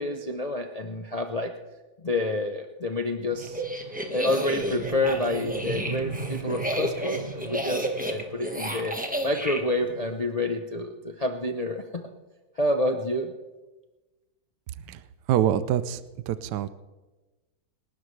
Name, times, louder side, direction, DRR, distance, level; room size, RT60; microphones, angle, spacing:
voice 1, 0.0-1.5 2.0-3.6 4.1-9.0 9.2-12.0 12.6-13.3, left 1 dB, 65° left, 4 dB, 0.3 m, -28 dB
sound 1, 3.3-10.1, right 4 dB, 40° right, 0.8 m, -40 dB
sound 2, 3.4-9.6, right 1 dB, 5° right, 1.1 m, -31 dB
voice 2, 15.3-16.0 16.3-16.7, right 11 dB, 70° right, 13 dB, 1.1 m, -25 dB
28.0 x 12.5 x 3.3 m, 1.2 s
omnidirectional pair, 2.1 m